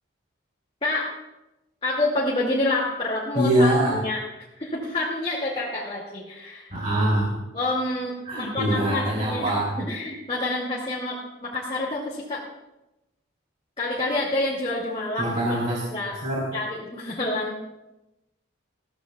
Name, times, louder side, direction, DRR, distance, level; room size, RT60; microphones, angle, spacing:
voice 1, 1.8-4.2 4.6-6.7 7.5-11.2 11.4-12.4 13.8-15.4 15.9-16.2 16.5-17.6, left 2 dB, 30° left, -5 dB, 2.2 m, -28 dB
voice 2, 3.3-4.0 6.7-7.3 8.2-9.8 15.2-16.5, right 1 dB, 40° right, -5 dB, 2.9 m, -23 dB
20.5 x 15.0 x 2.3 m, 0.95 s
head